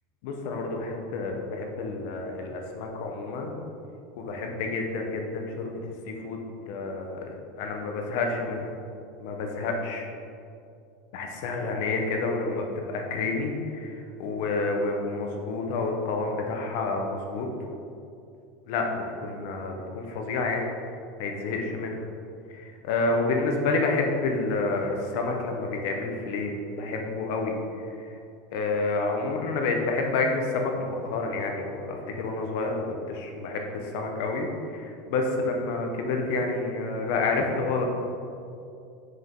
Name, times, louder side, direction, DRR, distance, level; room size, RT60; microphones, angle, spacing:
voice 1, 0.2-3.6 4.2-5.8 6.1-7.2 7.6-8.7 9.2-10.1 11.1-13.9 14.2-17.5 18.7-20.7 21.2-22.1 22.5-27.6 28.0-28.1 28.5-37.9, left 3 dB, 65° left, 2 dB, 0.9 m, -29 dB
6.4 x 4.6 x 3.7 m, 2.5 s
supercardioid pair, 145°, 0 cm